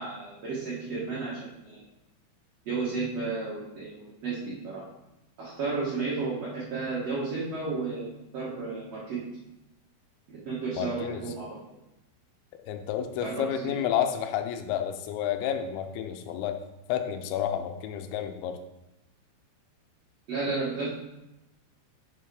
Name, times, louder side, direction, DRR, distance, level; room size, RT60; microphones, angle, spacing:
voice 1, 0.0-1.8 2.7-4.8 5.4-9.2 10.3-11.5 13.2-13.8 20.3-20.9, right 4 dB, 55° right, -7 dB, 1.8 m, -33 dB
voice 2, 10.8-11.2 12.6-16.6 16.9-18.6, left 9 dB, 80° left, 7 dB, 2.9 m, -30 dB
7.6 x 5.8 x 4.9 m, 0.94 s
omnidirectional pair, 5.4 m